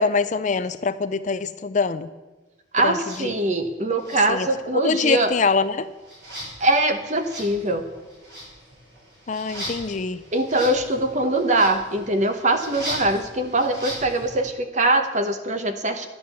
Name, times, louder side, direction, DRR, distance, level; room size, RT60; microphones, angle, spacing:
voice 1, 0.0-2.1 2.8-3.3 4.3-4.5 4.8-5.9 9.3-10.2, left 4 dB, 40° left, 13 dB, 0.4 m, -24 dB
voice 2, 2.7-5.3 6.6-7.8 10.3-16.1, right 2 dB, 35° right, 7 dB, 1.0 m, -22 dB
sound 1, 3.0-3.2 4.0-4.7 5.0-14.4, equal, 60° right, 5.5 m, -38 dB
11.5 x 9.5 x 7.0 m, 1.2 s
head